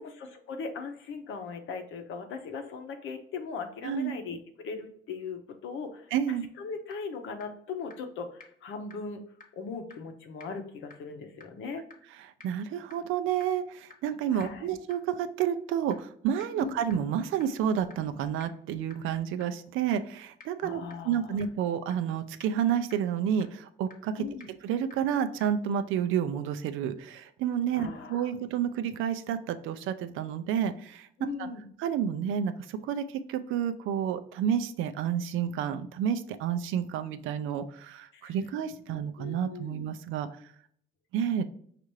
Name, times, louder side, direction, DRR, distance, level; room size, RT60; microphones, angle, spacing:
voice 1, 0.0-9.2 9.5-11.8 14.3-14.7 16.6-17.0 20.6-21.3 24.2-24.5 27.7-28.3 31.2-31.7 38.1-38.4 38.9-39.8, left 5 dB, 80° left, 6 dB, 0.7 m, -39 dB
voice 2, 3.8-4.1 6.1-6.5 12.4-24.2 24.6-31.1 31.4-31.5 31.8-40.3 41.1-41.5, right 9 dB, 90° right, 10 dB, 0.4 m, -30 dB
sound 1, 6.9-7.0 7.4-7.5 7.9-8.0 8.4-8.5 8.9-9.0 9.4-9.5 9.9-10.0 10.4-10.5 10.9-11.0 11.4-11.5 11.9-12.0 12.4-12.5 12.9-13.0 13.4-13.5 13.9-14.0 14.4-14.5 14.9-15.0 15.4-15.5 15.9-16.0 16.4-16.5 16.9-17.0 17.4-17.5 17.9-18.0 18.4-18.5 18.9-19.0 19.4-19.5 19.9-20.0 20.4-20.5 20.9-21.0 21.4-21.5 21.9-22.0 22.4-22.5 22.9-23.0 23.4-23.5 23.9-24.0 24.4-24.5 24.9-25.0 25.4-25.5, left 4 dB, 40° left, 1.0 m, -49 dB
5.4 x 2.5 x 3.1 m, 0.64 s
cardioid pair, 90°, 20 cm